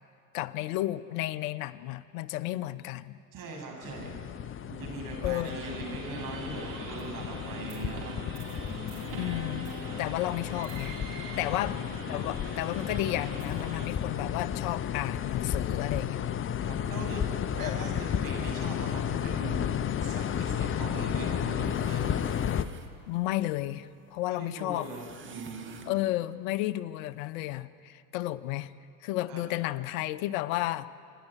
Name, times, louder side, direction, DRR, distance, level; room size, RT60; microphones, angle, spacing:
voice 1, 0.3-3.2 5.2-5.6 9.1-9.7 10.0-11.8 12.1-16.3 17.6-17.8 23.1-24.9 25.9-28.7 29.0-30.9, left 15 dB, 60° left, 14 dB, 0.9 m, -32 dB
voice 2, 3.3-4.1 4.6-8.2 11.5-11.6 16.6-17.3 17.6-19.7 20.0-22.1 24.2-25.9 29.3-29.5, right 3 dB, 45° right, 0 dB, 7.5 m, -41 dB
sound 1, 3.8-22.6, left 9 dB, 25° left, 0.8 m, -33 dB
sound 2, 5.4-13.9, right 4 dB, 60° right, 4.0 m, -43 dB
sound 3, 20.9-26.1, right 5 dB, 25° right, 2.0 m, -54 dB
27.0 x 11.0 x 9.2 m, 2.3 s
hypercardioid pair, 85°, 47 cm